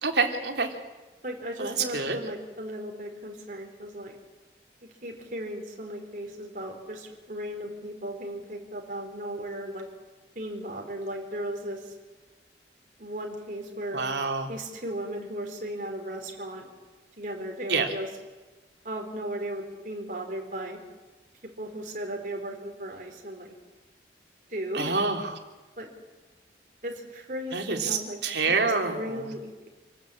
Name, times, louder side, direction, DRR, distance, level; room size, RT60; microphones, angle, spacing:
voice 1, 0.0-0.8 1.6-2.2 13.9-14.5 17.7-17.9 24.7-25.4 27.5-29.3, right 4 dB, 80° right, 4 dB, 3.2 m, -27 dB
voice 2, 1.2-4.1 5.0-9.8 10.3-11.9 13.0-14.0 14.5-16.7 17.2-18.1 18.8-20.8 21.6-23.5 24.5-25.0 25.8-25.9 26.8-28.2 28.6-29.7, right 1 dB, 45° right, 2 dB, 4.4 m, -36 dB
27.0 x 18.5 x 8.6 m, 1.2 s
head